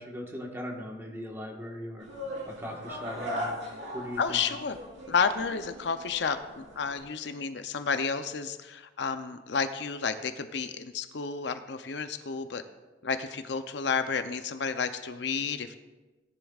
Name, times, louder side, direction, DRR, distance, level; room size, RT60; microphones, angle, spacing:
voice 1, 0.0-2.1 2.5-3.6 3.9-4.2, left 1 dB, 10° right, 1 dB, 1.3 m, -39 dB
sound 1, 2.0-7.0, equal, 70° right, 3.6 m, -39 dB
voice 2, 4.2-4.8 5.1-12.6 13.0-15.7, left 5 dB, 65° left, 9 dB, 0.6 m, -31 dB
17.5 x 10.5 x 2.4 m, 1.2 s
head